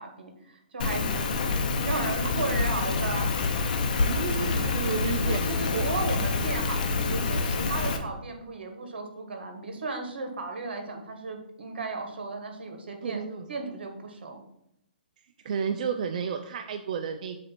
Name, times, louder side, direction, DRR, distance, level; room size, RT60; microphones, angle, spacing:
voice 1, 0.0-3.3 5.0-13.2 13.5-14.4, right 3 dB, 80° right, 5 dB, 1.4 m, -35 dB
Rain, 0.8-8.0, left 4 dB, 50° left, 0.8 m, -27 dB
voice 2, 4.1-5.9 13.0-13.5 15.4-17.4, right 6 dB, 50° right, 6 dB, 0.4 m, -32 dB
7.4 x 2.6 x 5.8 m, 0.80 s
hypercardioid pair, 160°, 6 cm